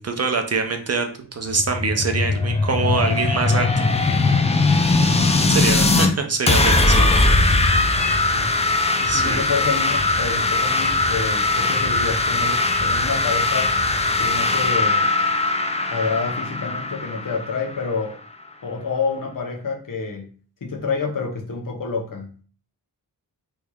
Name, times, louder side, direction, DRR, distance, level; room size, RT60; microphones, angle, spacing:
voice 1, 0.0-3.9 5.5-7.1 9.0-9.4, right 4 dB, 40° right, 5 dB, 0.5 m, -24 dB
sound 1, 1.4-6.1 6.5-18.0, left 2 dB, 15° left, 0.4 m, -20 dB
voice 2, 9.0-13.7 14.2-15.1 15.9-18.2 18.6-20.3 20.6-22.3, left 4 dB, 55° left, 1 dB, 0.9 m, -28 dB
3.4 x 3.1 x 2.3 m, 0.41 s
wide cardioid pair, 70°, 39 cm